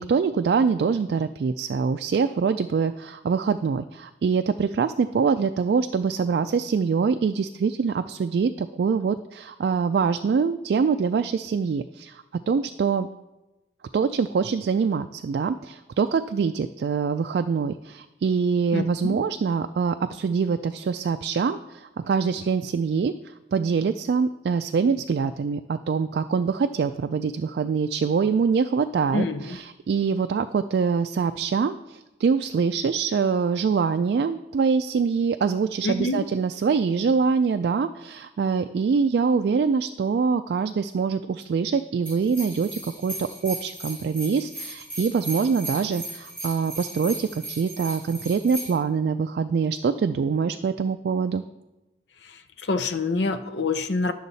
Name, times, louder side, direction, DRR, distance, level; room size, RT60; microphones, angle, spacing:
voice 1, 0.0-13.1 13.9-51.4, right 5 dB, 65° right, 8 dB, 0.3 m, -24 dB
voice 2, 18.7-19.2 29.1-29.6 35.8-36.2 52.2-54.1, left 2 dB, 80° left, 8 dB, 0.6 m, -26 dB
sound 1, 42.1-48.7, right 1 dB, 10° left, 2.5 m, -37 dB
11.0 x 6.4 x 4.0 m, 1.0 s
head